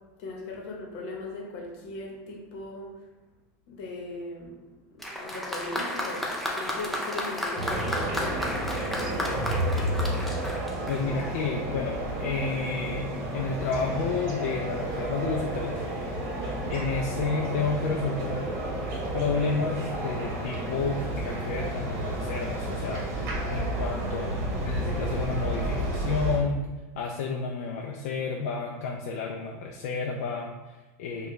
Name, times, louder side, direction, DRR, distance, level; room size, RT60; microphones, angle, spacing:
voice 1, 0.2-2.9 3.7-4.6 4.9-10.0 23.6-24.3, left 2 dB, 55° left, -1 dB, 1.0 m, -39 dB
Applause, 5.0-11.4, left 1 dB, ahead, 0.4 m, -33 dB
sound 1, 7.6-26.4, right 1 dB, 50° right, 1.1 m, -31 dB
voice 2, 10.9-15.9 16.7-18.4 19.1-24.3 24.6-26.6 27.0-31.3, left 4 dB, 75° left, 1 dB, 0.4 m, -31 dB
4.4 x 2.3 x 3.1 m, 1.1 s
supercardioid pair, 160°, 8 cm